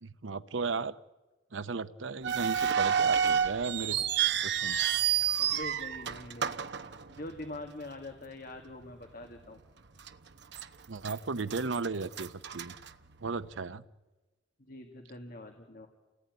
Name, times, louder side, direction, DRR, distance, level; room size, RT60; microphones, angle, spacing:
voice 1, 0.0-1.0 1.5-4.0 4.4-4.8 10.9-12.7 13.2-13.8, right 4 dB, 90° right, 13 dB, 0.8 m, -35 dB
sound 1, 2.2-7.6 7.9-8.0 8.7-8.9 9.4-9.5 10.1-10.7 11.0-13.5, right 8 dB, 65° right, 1.0 m, -30 dB
voice 2, 5.3-6.6 7.1-9.6 14.6-15.9, left 1 dB, 50° left, 4 dB, 2.2 m, -44 dB
29.0 x 18.5 x 9.6 m, 1.2 s
head